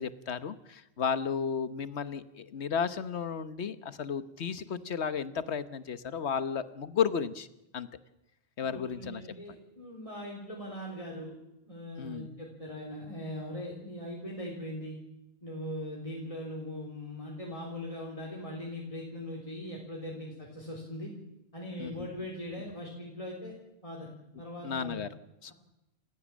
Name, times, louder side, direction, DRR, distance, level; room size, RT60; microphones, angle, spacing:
voice 1, 0.0-7.5 7.7-7.9 8.6-9.2 12.0-12.3 21.8-22.1 24.6-25.1 25.4-25.5, left 7 dB, 80° left, 13 dB, 1.4 m, -33 dB
voice 2, 8.6-11.4 11.7-15.0 15.4-21.1 21.5-23.5 23.8-24.1 24.4-25.0, left 1 dB, 30° left, -2 dB, 3.8 m, -40 dB
28.5 x 15.5 x 7.4 m, 0.89 s
omnidirectional pair, 1.1 m